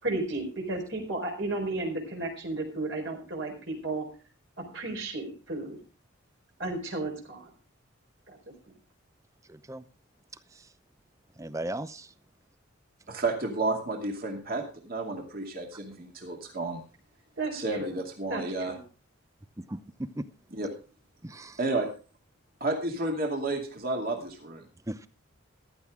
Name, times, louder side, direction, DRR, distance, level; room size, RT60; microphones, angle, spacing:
voice 1, 0.0-4.1 4.7-5.8 6.6-7.5 8.3-8.4 17.4-18.0 18.3-18.8, right 2 dB, 60° right, 1 dB, 4.4 m, -33 dB
voice 2, 9.5-9.8 11.4-12.1 19.7-19.8 20.2-20.3 21.2-21.6 24.9-25.1, right 1 dB, 15° right, 13 dB, 0.7 m, -36 dB
voice 3, 13.1-16.8 17.5-18.8 20.5-20.7 21.6-21.9 22.6-24.7, right 2 dB, 45° right, 2 dB, 2.4 m, -31 dB
15.0 x 12.0 x 3.6 m, 0.35 s
head